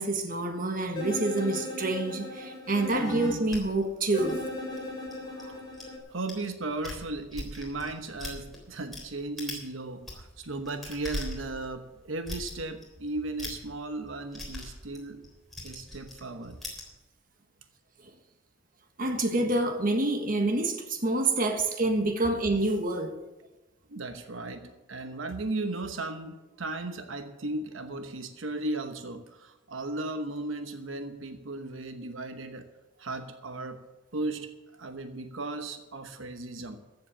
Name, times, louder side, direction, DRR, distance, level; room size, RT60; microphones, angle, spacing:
voice 1, 0.0-4.4 19.0-23.1, right 2 dB, 45° right, 5 dB, 1.5 m, -27 dB
sound 1, 1.0-3.3 4.1-6.0, left 2 dB, 25° left, 3.5 m, -37 dB
sound 2, 3.5-5.8 6.3-6.5 6.7-9.0 9.4-9.7 9.9-16.9, left 1 dB, ahead, 3.7 m, -40 dB
voice 2, 5.2-5.7 6.1-15.2 15.6-16.6 23.9-32.7 33.0-33.8 34.1-34.5 34.8-36.8, right 2 dB, 85° right, 7 dB, 1.0 m, -36 dB
14.5 x 7.8 x 7.3 m, 1.1 s
head